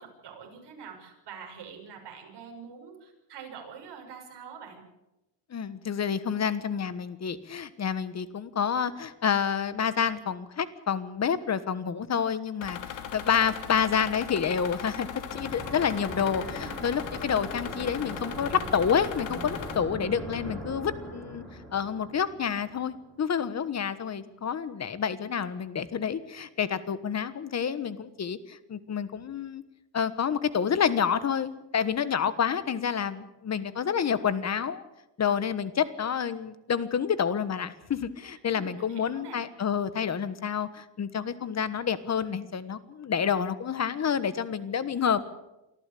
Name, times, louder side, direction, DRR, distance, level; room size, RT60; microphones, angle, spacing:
voice 1, 0.0-4.8 16.6-16.9 38.5-39.4, right 6 dB, 55° right, 2 dB, 6.4 m, -45 dB
voice 2, 5.5-21.4 21.7-29.6 29.9-34.8 35.2-45.2, left 7 dB, 30° left, 15 dB, 1.3 m, -29 dB
sound 1, 12.6-19.8, left 9 dB, 60° left, 3.0 m, -39 dB
sound 2, 15.3-23.7, right 1 dB, ahead, 5.9 m, -40 dB
24.5 x 14.0 x 8.5 m, 0.97 s
cardioid pair, 130°, 49 cm